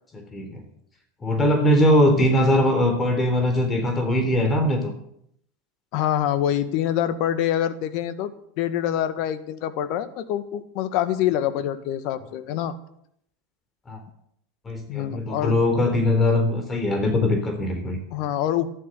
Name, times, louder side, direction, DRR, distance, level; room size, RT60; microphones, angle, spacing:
voice 1, 1.2-4.9 13.9-14.0 14.7-18.0, left 1 dB, 25° left, 6 dB, 3.7 m, -21 dB
voice 2, 5.9-8.3 8.6-12.8 14.9-15.6 18.1-18.7, left 11 dB, 60° left, 11 dB, 1.6 m, -25 dB
14.5 x 12.0 x 6.8 m, 0.70 s
hypercardioid pair, 85°, 0 cm